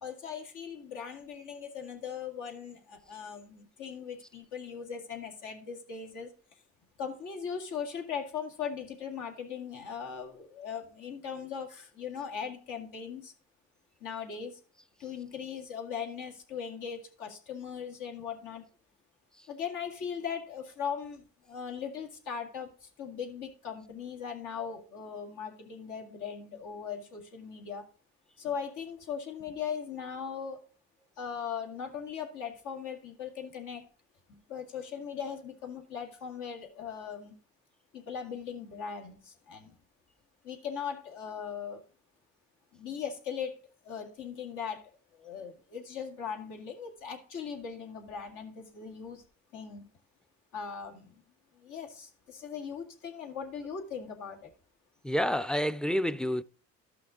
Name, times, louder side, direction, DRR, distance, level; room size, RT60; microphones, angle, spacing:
voice 1, 0.0-6.3 7.0-13.3 14.0-14.6 15.0-18.6 19.5-27.8 28.4-30.6 31.2-33.9 34.3-37.4 37.9-39.7 40.4-41.8 42.7-43.5 43.8-49.2 49.5-49.8 50.5-51.1 51.6-54.5, left 7 dB, 90° left, 2.0 m, -39 dB
voice 2, 55.0-56.4, equal, 5° left, 0.3 m, -28 dB
13.0 x 5.9 x 3.7 m
cardioid pair, 90°, 30 cm